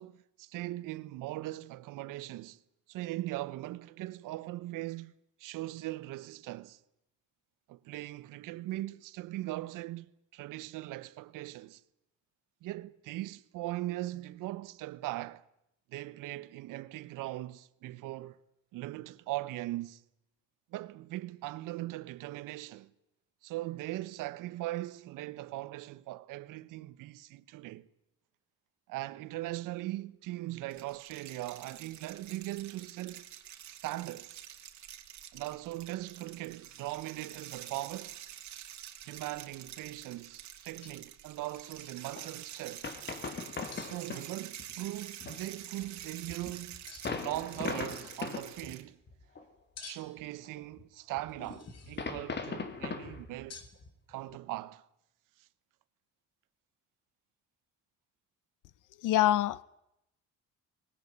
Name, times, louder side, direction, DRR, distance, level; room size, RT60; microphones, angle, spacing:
voice 1, 0.0-2.6 2.9-5.1 5.4-6.8 7.7-11.8 12.6-15.4 15.9-18.4 18.7-20.0 20.7-22.9 23.4-27.9 28.9-33.2 33.7-34.4 35.3-38.2 39.1-42.9 43.8-46.8 47.1-49.0 49.8-53.6 54.1-54.9 55.4-55.5, right 17 dB, 85° right, 1.1 m, -40 dB
sound 1, 30.7-48.8, right 11 dB, 60° right, 2.6 m, -48 dB
sound 2, 40.3-40.4 40.8-41.2 41.4-42.0 43.7-44.0 44.9-45.5 46.9-47.3 47.8-48.4 49.8-50.2 51.3-52.1 53.5-53.8, left 5 dB, 50° left, 3.9 m, -52 dB
sound 3, 42.2-42.3 42.6-42.7 42.8-44.3 44.6-44.7 45.2-48.8 49.1-49.4 50.2-50.8 51.2-54.4, left 4 dB, 35° left, 2.8 m, -40 dB
voice 2, 59.0-59.6, left 13 dB, 80° left, 1.0 m, -25 dB
20.5 x 18.5 x 9.8 m
cardioid pair, 110°, 31 cm